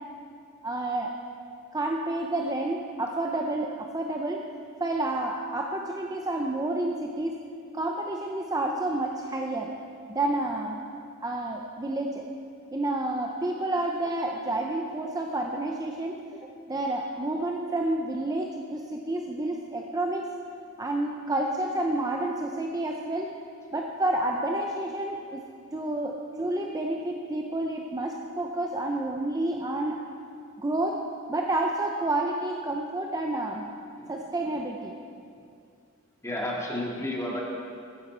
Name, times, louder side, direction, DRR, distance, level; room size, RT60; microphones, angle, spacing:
voice 1, 0.6-1.1 1.7-4.5 4.8-7.4 7.7-9.7 10.1-10.8 11.2-12.2 12.7-16.2 16.7-20.3 20.8-23.3 23.7-25.4 25.7-30.0 30.6-31.0 31.3-33.7 34.1-35.0, right 2 dB, 15° right, 1 dB, 0.6 m, -29 dB
voice 2, 36.2-37.4, left 1 dB, 15° left, -3 dB, 2.0 m, -31 dB
14.5 x 9.6 x 4.5 m, 2.4 s
head